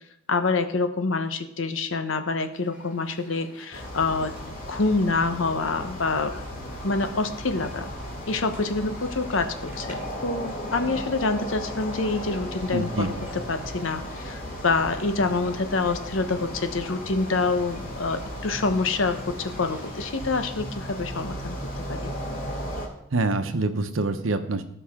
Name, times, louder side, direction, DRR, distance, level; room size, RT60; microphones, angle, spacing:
voice 1, 0.3-4.3 4.7-6.3 6.8-7.9 8.3-10.0 10.2-13.1 13.5-21.6 21.9-22.1, left 3 dB, 80° left, 8 dB, 1.0 m, -26 dB
sound 1, 2.5-20.5, right 1 dB, 10° right, 2.7 m, -52 dB
sound 2, 3.7-22.9, equal, 45° left, 2.2 m, -36 dB
voice 2, 12.7-13.1 23.1-24.6, right 2 dB, 90° right, 8 dB, 0.9 m, -25 dB
17.5 x 5.8 x 3.7 m, 0.79 s
head